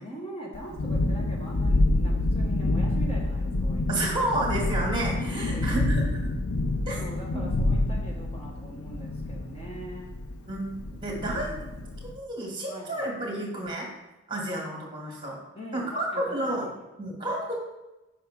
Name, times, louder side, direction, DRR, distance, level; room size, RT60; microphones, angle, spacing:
voice 1, 0.0-4.2 5.3-6.4 7.0-10.1 11.1-11.8 12.7-13.1 15.5-16.8, right 1 dB, 30° left, -2 dB, 1.2 m, -42 dB
Thunderstorm, 0.5-12.1, left 2 dB, 90° left, 0.6 m, -27 dB
voice 2, 3.9-6.2 6.9-7.0 7.3-7.4 10.5-11.5 12.0-13.9 14.3-15.4 15.7-17.5, right 1 dB, 20° right, -1 dB, 2.0 m, -31 dB
7.4 x 5.9 x 3.6 m, 0.99 s
head